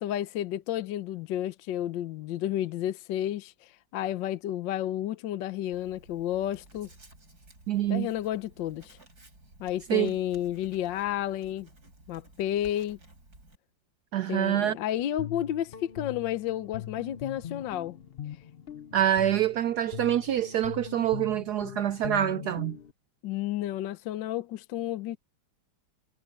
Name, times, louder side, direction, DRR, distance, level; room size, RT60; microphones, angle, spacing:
voice 1, 0.0-6.9 7.9-9.0 9.6-11.7 12.1-13.0 14.3-18.0 23.2-25.2, left 12 dB, 70° left, 1.4 m, -31 dB
Writing, 5.7-13.6, right 2 dB, 50° right, 7.4 m, -55 dB
voice 2, 7.7-8.1 9.9-10.1 14.1-14.8 18.9-22.8, right 11 dB, 75° right, 0.9 m, -26 dB
Guitar, 14.9-22.9, left 10 dB, 85° left, 0.5 m, -41 dB
omnidirectional pair, 2.2 m